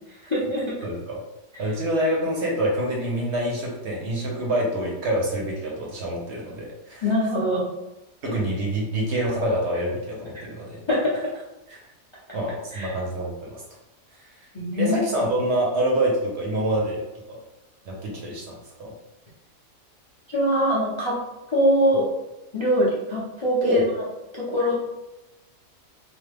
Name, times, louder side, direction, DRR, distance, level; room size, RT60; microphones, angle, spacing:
voice 1, 0.3-0.7 7.0-7.7 10.9-11.3 12.7-12.9 14.5-15.0 20.3-21.2 21.5-22.1 22.5-23.8 24.4-24.8, equal, 35° left, -8 dB, 0.4 m, -22 dB
voice 2, 0.8-1.2 1.6-7.1 8.2-10.8 11.7-11.8 12.3-13.6 14.8-17.0 17.3-17.4 17.9-18.9 23.6-23.9, right 1 dB, 60° right, -2 dB, 0.9 m, -26 dB
3.1 x 2.1 x 3.3 m, 0.98 s
omnidirectional pair, 1.5 m